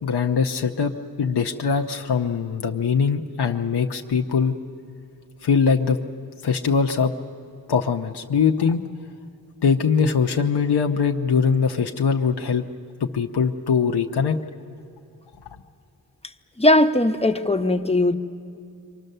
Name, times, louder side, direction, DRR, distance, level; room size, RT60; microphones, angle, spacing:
voice 1, 0.0-4.6 5.4-6.0 6.4-7.1 7.7-8.8 9.6-12.6 13.1-14.4, left 6 dB, 85° left, 3 dB, 0.9 m, -22 dB
voice 2, 16.6-18.1, left 1 dB, 15° left, 6 dB, 1.1 m, -18 dB
27.5 x 24.5 x 6.7 m, 2.4 s
cardioid pair, 50°, 39 cm